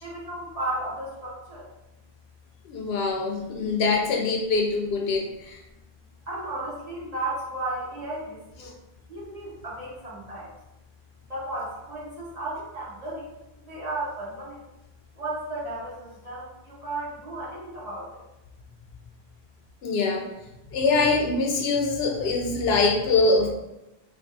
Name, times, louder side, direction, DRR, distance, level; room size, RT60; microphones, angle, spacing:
voice 1, 0.0-1.7 6.3-8.8 9.1-10.5 11.3-13.3 13.6-14.6 15.1-18.2, right 2 dB, 40° right, -8 dB, 1.2 m, -34 dB
voice 2, 2.6-5.6 19.8-20.3 20.7-23.5, left 3 dB, 80° left, 1 dB, 0.8 m, -23 dB
3.4 x 2.4 x 2.6 m, 0.94 s
omnidirectional pair, 1.0 m